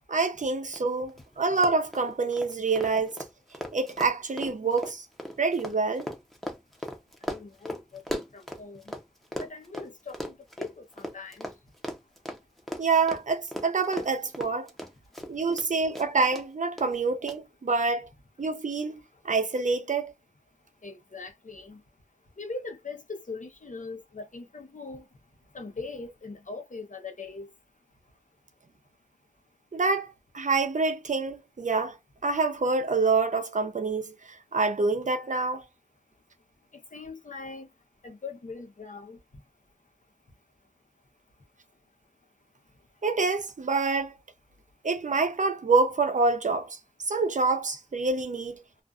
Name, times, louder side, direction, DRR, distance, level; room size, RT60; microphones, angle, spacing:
voice 1, 0.1-3.2 3.7-5.1 5.4-6.1 12.8-14.7 15.3-18.1 18.4-20.1 29.7-32.0 32.2-35.6 43.0-44.1 44.8-46.8 47.1-48.6, right 4 dB, 70° right, 0.6 m, -26 dB
Run, 0.7-0.8 1.1-1.2 1.5-9.0 9.3-15.7 15.9-16.4 16.8-16.9 17.3-17.4, equal, ahead, 0.7 m, -37 dB
voice 2, 7.3-8.9 9.4-11.5 20.8-21.8 22.4-25.0 25.5-27.5 36.9-37.7 38.0-39.2, left 3 dB, 75° left, 0.8 m, -41 dB
2.5 x 2.4 x 2.3 m
wide cardioid pair, 55°, 13 cm